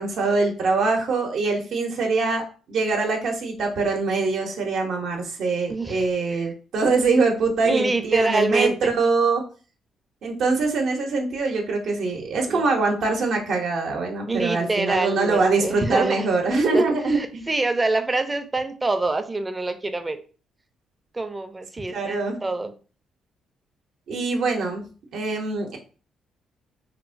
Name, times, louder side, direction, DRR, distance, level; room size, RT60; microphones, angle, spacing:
voice 1, 0.0-9.4 10.2-17.4 21.9-22.4 24.1-24.8 25.1-25.8, right 3 dB, 70° right, 1 dB, 0.7 m, -23 dB
voice 2, 5.7-6.5 7.6-8.8 12.5-12.6 14.3-16.3 16.7-20.2 21.1-22.7, right 2 dB, 20° right, 8 dB, 0.4 m, -26 dB
2.9 x 2.1 x 2.5 m, 0.36 s
cardioid pair, 90°, 0 cm